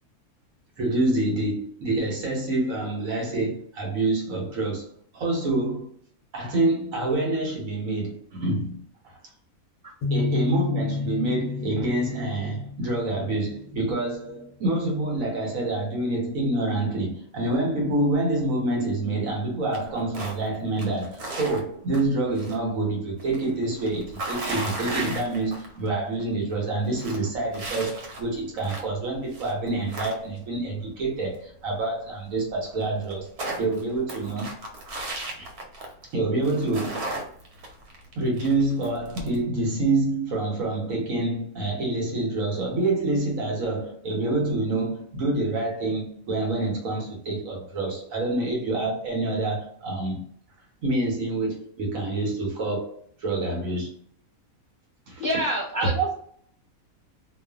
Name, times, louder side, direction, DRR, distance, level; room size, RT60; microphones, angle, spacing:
voice 1, 0.8-4.9 5.1-5.9 6.3-9.1 10.1-33.3 33.5-34.5 35.4-35.5 36.1-37.1 38.2-50.2 50.8-52.9 53.2-54.0 55.1-55.3, right 2 dB, 70° right, 1.2 m, -27 dB
sound 1, 10.0-13.7, left 4 dB, 60° left, 0.9 m, -30 dB
sound 2, 19.7-20.5 20.8-22.6 22.9-25.9 26.2-26.3 26.7-29.0 29.3-30.6 32.1-32.2 32.4-32.5 32.8-36.1 36.4-39.4, right 2 dB, 90° right, 1.2 m, -35 dB
voice 2, 55.2-56.1, right 2 dB, 5° left, 1.1 m, -25 dB
2.5 x 2.4 x 2.3 m
omnidirectional pair, 1.6 m